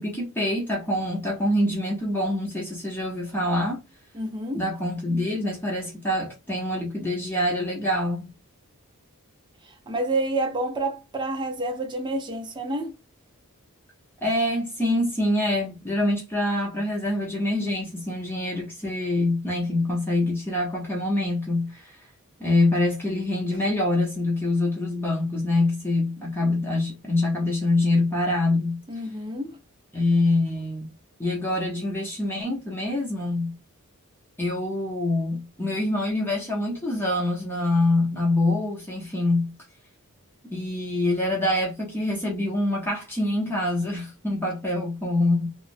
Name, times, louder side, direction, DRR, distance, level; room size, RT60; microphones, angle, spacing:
voice 1, 0.0-3.8 4.5-8.3 14.2-22.0 22.4-28.8 29.9-30.9 31.2-33.5 34.4-39.5 40.5-45.5, left 1 dB, 10° left, 0.7 m, -25 dB
voice 2, 4.1-4.6 9.6-13.0 28.9-29.6, right 2 dB, 20° right, 0.5 m, -29 dB
2.9 x 2.0 x 2.5 m
head